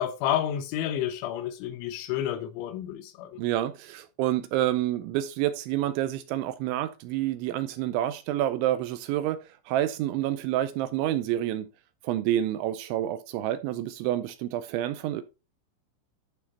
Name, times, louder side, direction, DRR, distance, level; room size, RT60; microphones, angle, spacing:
voice 1, 0.0-3.4, left 11 dB, 80° left, 3.1 m, -30 dB
voice 2, 3.4-11.7 12.0-15.2, right 13 dB, 80° right, 2.9 m, -28 dB
11.5 x 4.3 x 4.1 m
omnidirectional pair, 5.7 m